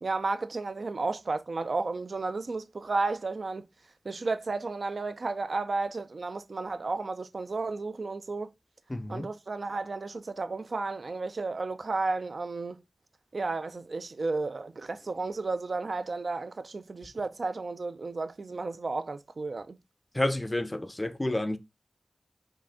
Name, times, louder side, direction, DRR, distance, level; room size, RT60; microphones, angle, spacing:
voice 1, 0.0-3.7 4.1-8.5 9.1-12.8 13.3-19.8, right 3 dB, 55° right, 0.3 m, -33 dB
voice 2, 8.9-9.3 20.1-21.6, left 1 dB, 15° left, 0.4 m, -30 dB
4.9 x 2.5 x 3.5 m
wide cardioid pair, 85°, 0 cm